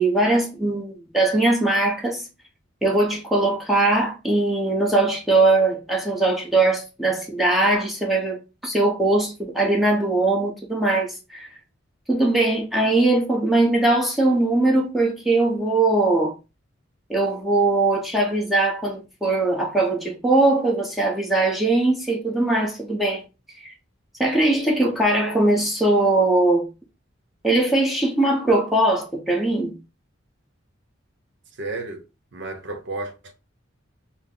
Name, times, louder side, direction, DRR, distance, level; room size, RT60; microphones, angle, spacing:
voice 1, 0.0-2.2 2.8-11.5 12.1-16.4 17.1-23.2 23.6-23.7 24.2-26.7 27.4-29.7, right 2 dB, ahead, 0.9 m, -20 dB
voice 2, 31.6-32.0 32.3-33.3, right 2 dB, 65° right, 0.8 m, -32 dB
4.0 x 2.0 x 3.7 m
head